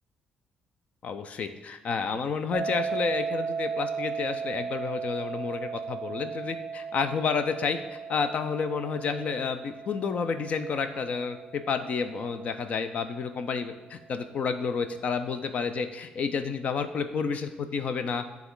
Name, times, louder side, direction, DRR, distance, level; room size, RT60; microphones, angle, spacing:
voice 1, 1.0-18.2, left 5 dB, 45° left, 9 dB, 0.5 m, -30 dB
sound 1, 2.5-13.4, right 6 dB, 45° right, 0.5 m, -36 dB
9.3 x 3.5 x 3.8 m, 1.3 s
cardioid pair, 145°, 3 cm